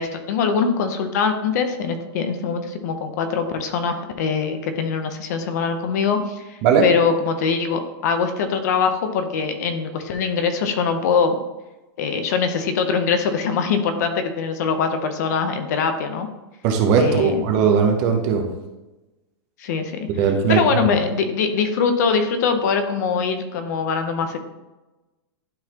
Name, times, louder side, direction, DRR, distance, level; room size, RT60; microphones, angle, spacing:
voice 1, 0.0-11.4 12.0-16.3 17.0-17.4 19.6-24.4, left 5 dB, 40° left, 8 dB, 0.7 m, -23 dB
voice 2, 16.6-18.4 20.2-20.9, right 6 dB, 25° right, 4 dB, 0.7 m, -18 dB
12.0 x 4.0 x 2.9 m, 1.0 s
supercardioid pair, 180°, 14 cm